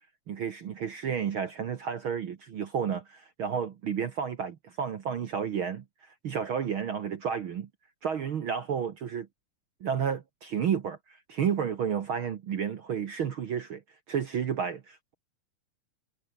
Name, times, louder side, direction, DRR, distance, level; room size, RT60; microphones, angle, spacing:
voice 1, 0.3-7.7 8.0-9.3 9.8-13.8 14.1-15.1, right 7 dB, 65° right, 1.3 m, -31 dB
omnidirectional pair, 4.2 m